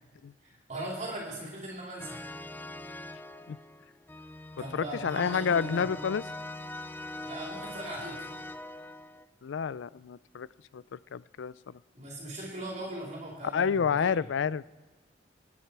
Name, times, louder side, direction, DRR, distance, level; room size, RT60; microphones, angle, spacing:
voice 1, 0.4-2.3 4.6-5.9 7.2-8.3 12.0-14.1, right 1 dB, 40° right, -3 dB, 4.0 m, -39 dB
sound 1, 2.0-9.3, left 1 dB, 10° left, 0.4 m, -42 dB
voice 2, 4.7-6.2 9.4-10.5 10.7-11.8 13.5-14.9, left 6 dB, 90° left, 19 dB, 0.4 m, -29 dB
27.0 x 9.7 x 4.7 m, 1.4 s
head